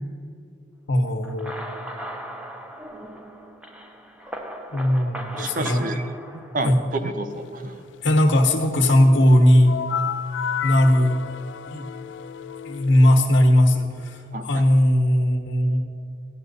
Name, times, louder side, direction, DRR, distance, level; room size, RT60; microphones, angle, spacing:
voice 1, 0.9-1.7 4.7-6.0 6.6-6.8 8.0-9.7 10.6-11.2 11.7-11.8 12.6-15.8, left 1 dB, 90° left, 1 dB, 1.1 m, -18 dB
sound 1, 1.2-7.0, equal, 5° right, 0.6 m, -38 dB
voice 2, 5.2-6.0 6.3-6.8 7.0-7.8 14.3-14.6, right 2 dB, 45° right, 9 dB, 0.7 m, -30 dB
sound 2, 9.6-13.2, left 8 dB, 75° left, 0.3 m, -31 dB
11.5 x 11.0 x 4.1 m, 2.6 s
head